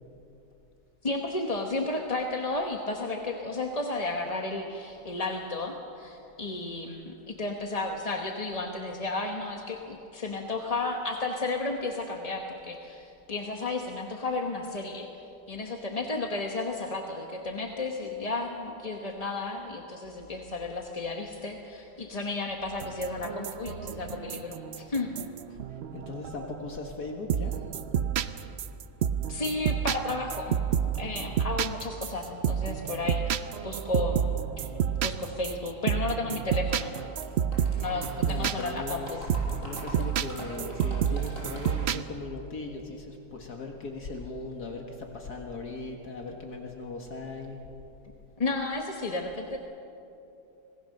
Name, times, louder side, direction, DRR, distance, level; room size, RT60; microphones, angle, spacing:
voice 1, 1.0-15.1 15.5-25.1 29.3-30.6 30.9-33.2 33.6-34.3 34.6-34.7 35.0-37.0 37.7-39.2 48.4-49.6, left 2 dB, 25° left, 2 dB, 1.0 m, -33 dB
sound 1, 22.8-26.7 27.3-42.0, right 8 dB, 80° right, 0.5 m, -30 dB
voice 2, 25.9-27.6 38.2-39.2 39.6-47.6, left 3 dB, 60° left, 2 dB, 2.2 m, -38 dB
sound 2, 37.0-37.3 37.5-41.7, left 1 dB, 45° left, 5.4 m, -44 dB
26.5 x 19.0 x 6.6 m, 2.9 s
omnidirectional pair, 1.9 m